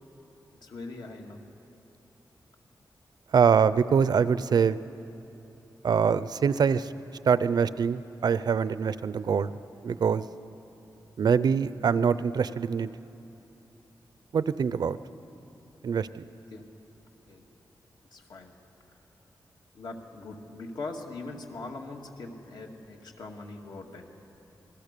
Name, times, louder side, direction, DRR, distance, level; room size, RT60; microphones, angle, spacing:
voice 1, 0.6-1.4 15.9-16.0 16.5-16.7 17.3-17.5 18.1-18.5 19.7-24.2, left 3 dB, 75° left, 1 dB, 2.2 m, -41 dB
voice 2, 3.3-4.8 5.8-6.9 7.3-9.5 9.8-10.2 11.2-12.9 14.3-15.0 15.8-16.2, right 6 dB, 65° right, 15 dB, 0.5 m, -24 dB
27.5 x 20.5 x 6.8 m, 3.0 s
wide cardioid pair, 180°, 8 cm